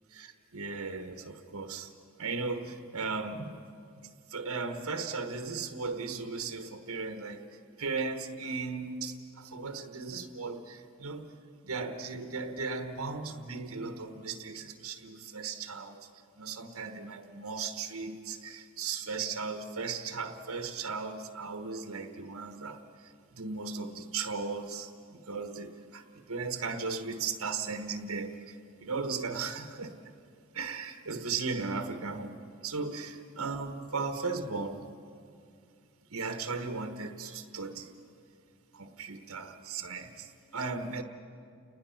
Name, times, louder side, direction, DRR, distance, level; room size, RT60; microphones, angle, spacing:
voice 1, 0.1-1.9 2.2-3.6 4.0-11.3 11.6-16.1 16.4-30.0 30.5-32.4 32.6-34.9 36.1-37.9 38.7-41.0, right 4 dB, 80° right, 6 dB, 1.2 m, -37 dB
30.0 x 19.5 x 5.8 m, 2.4 s
head